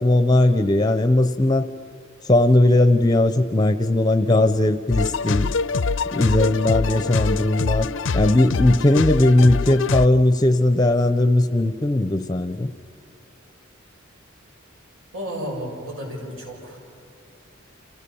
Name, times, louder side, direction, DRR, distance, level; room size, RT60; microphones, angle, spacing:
voice 1, 0.0-1.7 2.2-5.5 6.1-7.9 8.1-12.7, left 1 dB, 20° left, 10 dB, 0.7 m, -18 dB
sound 1, 4.9-10.1, left 4 dB, 65° left, 0.5 m, -24 dB
voice 2, 15.1-16.8, equal, 75° right, 1 dB, 7.1 m, -32 dB
29.5 x 27.5 x 7.1 m, 2.5 s
head